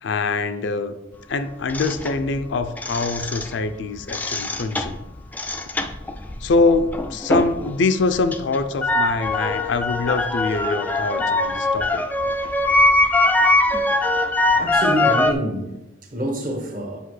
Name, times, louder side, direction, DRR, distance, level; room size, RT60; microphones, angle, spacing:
voice 1, 0.0-0.9 1.3-5.0 6.4-12.1, left 3 dB, 75° left, 10 dB, 0.5 m, -24 dB
sound 1, 1.7-3.7 4.0-7.7 8.0-15.3, left 2 dB, 10° left, 0.3 m, -22 dB
voice 2, 14.5-15.7 16.1-17.0, equal, 45° right, 2 dB, 1.2 m, -26 dB
7.9 x 5.2 x 3.2 m, 0.97 s
head